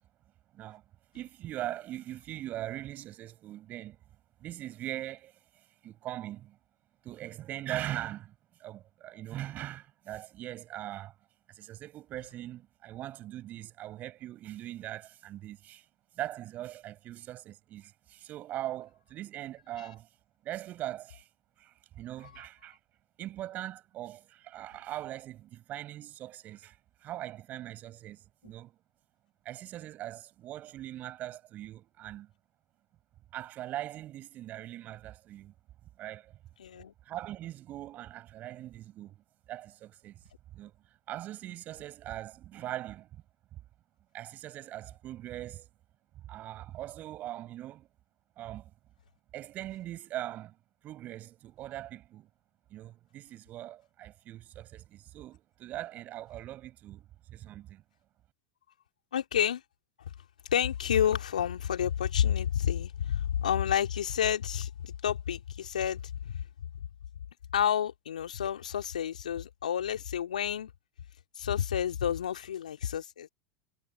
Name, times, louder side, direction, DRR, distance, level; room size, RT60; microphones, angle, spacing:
voice 1, 1.1-4.0 4.4-6.6 7.0-8.3 8.6-11.1 11.5-15.8 16.1-20.1 20.4-21.3 21.6-22.8 23.2-28.8 29.4-32.3 33.3-35.5 36.0-36.3 37.1-39.2 39.5-40.2 40.5-40.7 41.1-43.2 43.5-43.6 44.1-45.7 46.3-47.9 48.4-48.7 49.3-50.6 50.8-52.3 52.7-57.8, right 13 dB, 40° right, 5.6 m, -41 dB
voice 2, 36.6-36.9 59.1-59.6 60.5-66.4 66.7-66.8 67.5-70.7 71.3-73.3, left 9 dB, 75° left, 2.9 m, -30 dB
figure-of-eight pair, 80°, 4 cm